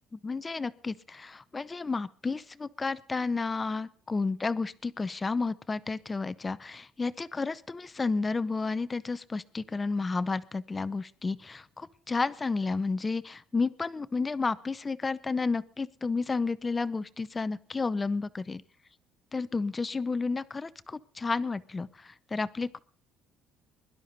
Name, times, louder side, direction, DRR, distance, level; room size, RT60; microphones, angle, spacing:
voice 1, 0.1-18.6 19.3-22.8, left 4 dB, 20° left, 15 dB, 0.7 m, -31 dB
22.0 x 12.0 x 4.1 m, 0.43 s
cardioid pair, 140°, 0 cm